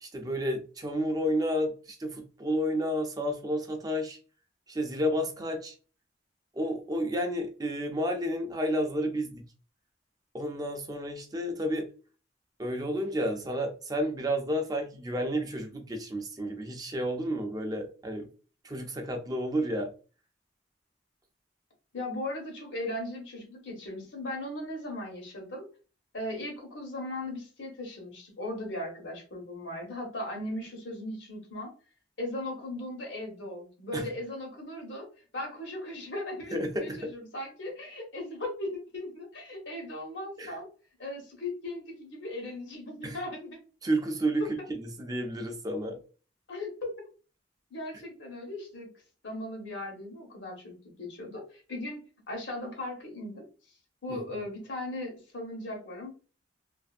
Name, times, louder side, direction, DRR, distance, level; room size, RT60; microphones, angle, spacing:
voice 1, 0.0-4.2 4.7-5.7 6.5-9.4 10.3-11.9 12.6-18.3 18.6-19.9 33.9-34.0 36.5-37.1 40.4-40.5 43.0-43.2 43.8-44.5 44.8-46.0 54.1-54.2, equal, 20° right, 0.4 m, -31 dB
voice 2, 21.9-25.7 26.1-31.7 32.2-35.1 35.3-40.7 41.0-43.6 44.4-44.5 46.5-46.9 47.7-48.9 49.2-53.4 54.0-56.1, left 1 dB, 80° left, 1.1 m, -38 dB
2.6 x 2.5 x 2.4 m
head